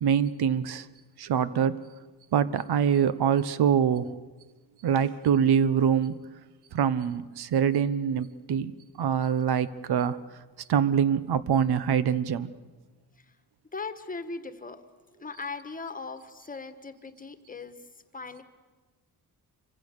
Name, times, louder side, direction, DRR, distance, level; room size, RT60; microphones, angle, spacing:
voice 1, 0.0-0.9 1.2-1.8 2.3-4.2 4.8-6.2 6.7-10.2 10.7-12.5, right 8 dB, 75° right, 15 dB, 1.1 m, -24 dB
voice 2, 13.7-14.8 15.1-17.8 18.1-18.4, left 4 dB, 20° left, 10 dB, 1.5 m, -39 dB
27.0 x 24.5 x 6.7 m, 1.3 s
wide cardioid pair, 155°, 38 cm